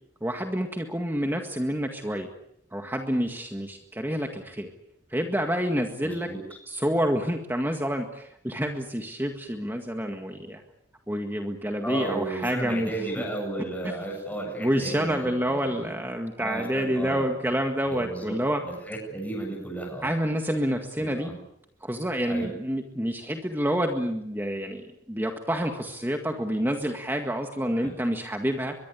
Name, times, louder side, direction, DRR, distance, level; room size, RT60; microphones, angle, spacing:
voice 1, 0.2-2.3 2.7-4.7 5.1-6.3 6.7-10.6 11.1-13.2 14.6-18.6 20.0-21.3 21.8-28.8, equal, 10° right, 4 dB, 1.9 m, -28 dB
voice 2, 6.0-6.4 11.8-15.9 16.4-17.3 17.9-18.4 18.6-20.1 21.0-21.3 22.3-22.5 27.8-27.9, right 2 dB, 10° left, 0 dB, 7.6 m, -34 dB
24.0 x 22.0 x 8.5 m, 0.76 s
head